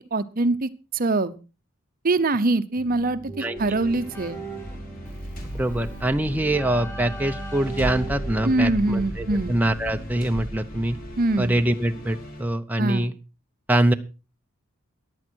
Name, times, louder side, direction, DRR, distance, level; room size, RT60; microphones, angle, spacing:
voice 1, 0.1-1.3 2.0-4.4 8.4-9.6 11.2-11.5 12.8-13.1, right 2 dB, 40° right, 13 dB, 0.7 m, -23 dB
Keyboard (musical), 2.8-10.0, right 3 dB, 10° left, 3.6 m, -39 dB
sound 1, 3.5-12.4, equal, 40° left, 3.2 m, -36 dB
voice 2, 5.5-11.0 11.4-13.1 13.7-13.9, right 1 dB, 10° right, 6 dB, 0.6 m, -24 dB
15.0 x 10.5 x 4.5 m, 0.33 s
head